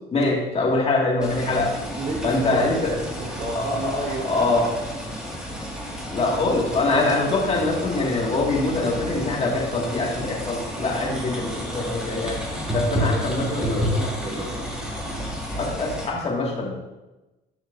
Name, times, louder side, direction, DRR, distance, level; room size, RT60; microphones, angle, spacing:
voice 1, 0.1-1.7 2.2-2.9 3.5-4.7 6.1-12.4 12.7-14.4 15.6-16.8, left 2 dB, 35° left, -2 dB, 2.0 m, -24 dB
sound 1, 1.2-16.1, equal, 5° right, 2.0 m, -31 dB
voice 2, 1.8-4.7 10.9-11.2 12.9-14.8, right 3 dB, 45° right, -2 dB, 1.7 m, -33 dB
10.0 x 5.9 x 2.6 m, 1.0 s
cardioid pair, 110°, 17 cm